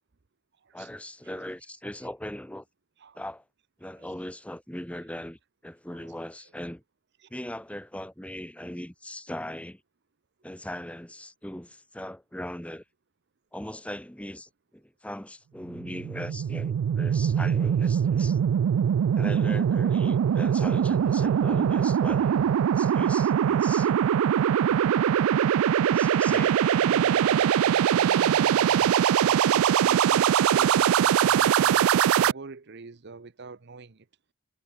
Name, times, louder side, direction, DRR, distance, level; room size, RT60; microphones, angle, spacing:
voice 1, 0.7-2.6 3.1-3.4 3.8-6.8 7.3-9.8 10.4-12.8 13.5-18.4 19.1-23.9 25.9-26.6, left 1 dB, 5° left, 1.4 m, -39 dB
sound 1, 15.8-32.3, right 8 dB, 85° right, 0.3 m, -22 dB
voice 2, 26.8-34.1, right 4 dB, 55° right, 0.8 m, -42 dB
head